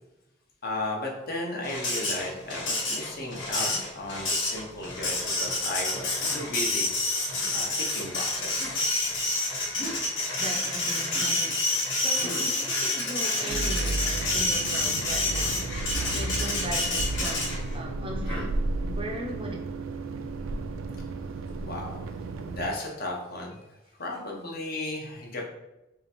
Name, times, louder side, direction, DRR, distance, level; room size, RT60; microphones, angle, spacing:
voice 1, 0.6-6.9 7.5-8.8 21.6-22.0 22.4-25.4, left 2 dB, 50° left, 0 dB, 0.8 m, -35 dB
Printer, 1.6-17.8, left 2 dB, 70° left, 1.2 m, -28 dB
Human voice, 3.5-3.8 4.9-5.2 6.2-6.5 7.3-7.5 8.5-8.8 9.7-10.1 11.0-11.3 12.1-12.5 13.3-13.6 14.6-14.9 15.8-16.1 17.1-17.4 18.2-18.5, equal, 25° left, 1.1 m, -41 dB
voice 2, 10.4-15.7 16.1-18.6 18.8-19.7, right 1 dB, 25° right, 1 dB, 0.5 m, -38 dB
sound 1, 13.5-22.7, right 2 dB, 85° right, 0.4 m, -33 dB
3.4 x 2.9 x 4.2 m, 0.95 s
head